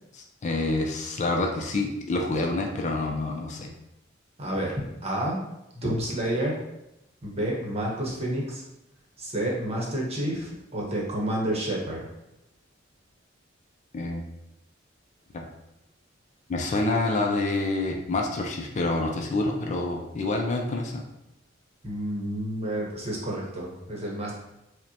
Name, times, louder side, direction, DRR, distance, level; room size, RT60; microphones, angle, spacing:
voice 1, 0.4-3.7 13.9-14.2 15.3-15.5 16.5-21.0, left 2 dB, 40° left, 1 dB, 0.4 m, -27 dB
voice 2, 4.4-5.4 5.7-6.6 7.2-8.6 9.2-12.1 21.8-24.4, right 1 dB, 35° right, -3 dB, 0.9 m, -29 dB
5.1 x 2.1 x 2.8 m, 0.88 s
head